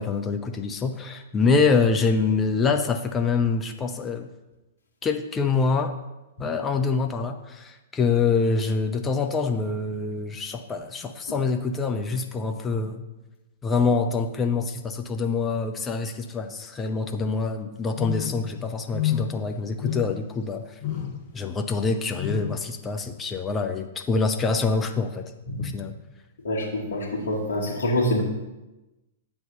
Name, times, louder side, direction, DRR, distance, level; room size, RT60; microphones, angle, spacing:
voice 1, 0.0-4.3 5.0-6.0 6.4-13.0 13.6-20.8 21.3-25.2 25.6-25.9, left 4 dB, 15° left, 5 dB, 0.4 m, -25 dB
sound 1, 17.9-18.5 18.9-19.4 19.8-20.3 20.8-21.2 22.1-22.6, left 11 dB, 30° left, 0.9 m, -29 dB
voice 2, 26.4-28.2, left 1 dB, 55° left, -5 dB, 1.3 m, -26 dB
7.7 x 3.5 x 5.3 m, 1.0 s
figure-of-eight pair, 105°, 0 cm